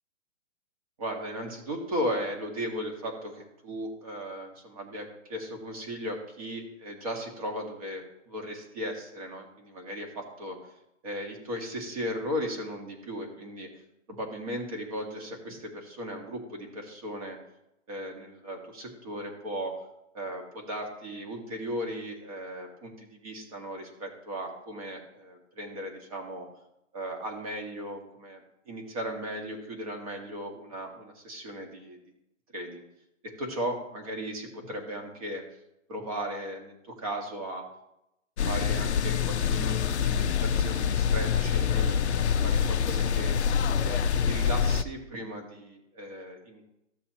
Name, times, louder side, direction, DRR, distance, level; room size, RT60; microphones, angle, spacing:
voice 1, 1.0-10.6 11.0-13.7 14.1-17.4 17.9-19.7 20.1-26.5 26.9-28.4 28.7-32.0 32.5-32.8 33.4-35.4 35.9-37.6 38.5-43.4 43.8-44.0 44.2-46.6, equal, 25° right, 3 dB, 1.8 m, -36 dB
sound 1, 38.4-44.8, left 7 dB, 60° left, 0.6 m, -26 dB
14.5 x 6.7 x 3.0 m, 0.85 s
hypercardioid pair, 170°, 39 cm